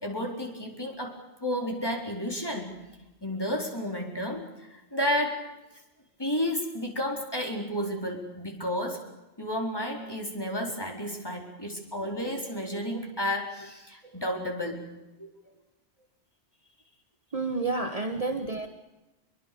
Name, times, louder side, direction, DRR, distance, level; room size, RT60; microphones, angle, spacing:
voice 1, 0.0-2.8 3.2-5.4 6.2-9.0 9.4-14.8, equal, 20° left, 1 dB, 4.3 m, -32 dB
voice 2, 17.3-18.7, right 3 dB, 35° right, 5 dB, 1.3 m, -31 dB
25.5 x 22.5 x 6.9 m, 1.0 s
omnidirectional pair, 1.2 m